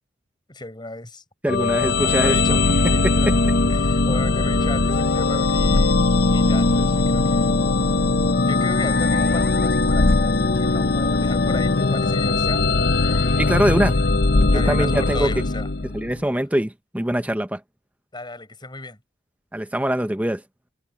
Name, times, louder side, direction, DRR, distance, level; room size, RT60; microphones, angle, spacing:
voice 1, 0.5-1.2 2.0-2.6 2.9-3.4 3.7-6.0 6.3-7.5 8.0-8.1 8.4-13.8 14.5-15.7 18.1-19.0, left 2 dB, 25° left, 6.9 m, -35 dB
voice 2, 1.4-2.6 3.0-3.3 13.4-14.0 14.5-15.3 15.9-17.6 19.5-20.4, right 1 dB, 10° right, 0.9 m, -23 dB
sound 1, 1.5-16.2, left 3 dB, 60° left, 0.8 m, -20 dB
Glass, 8.4-13.0 13.3-14.0 14.4-14.9 15.5-15.8, left 1 dB, 45° left, 2.5 m, -38 dB
head